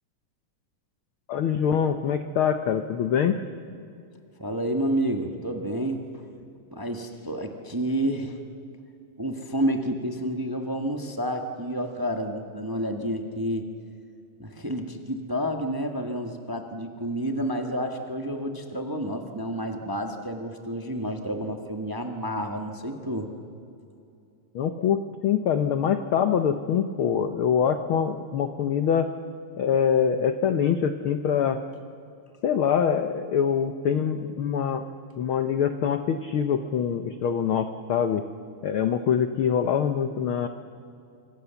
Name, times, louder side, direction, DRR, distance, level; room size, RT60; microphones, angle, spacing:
voice 1, 1.3-3.4 24.5-29.1 29.6-31.6 32.4-34.8 35.2-38.2 38.6-40.5, left 8 dB, 80° left, 9 dB, 1.1 m, -24 dB
voice 2, 4.4-6.2 6.7-8.4 9.2-13.7 14.4-23.3, right 1 dB, 25° right, 4 dB, 0.4 m, -30 dB
26.5 x 25.5 x 7.1 m, 2.6 s
omnidirectional pair, 3.6 m